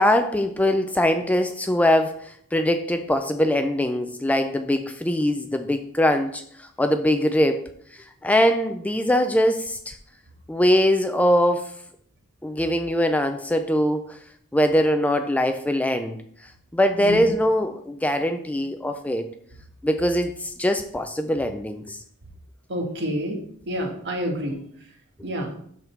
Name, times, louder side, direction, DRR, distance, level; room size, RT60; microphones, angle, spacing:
voice 1, 0.0-7.7 7.9-10.0 10.5-11.7 12.4-14.2 14.5-16.2 16.7-19.3 19.8-22.0, left 1 dB, 5° left, 7 dB, 0.4 m, -22 dB
voice 2, 22.7-23.4 23.7-24.6 25.2-25.5, equal, 55° right, 2 dB, 1.7 m, -28 dB
12.5 x 4.1 x 4.5 m, 0.65 s
head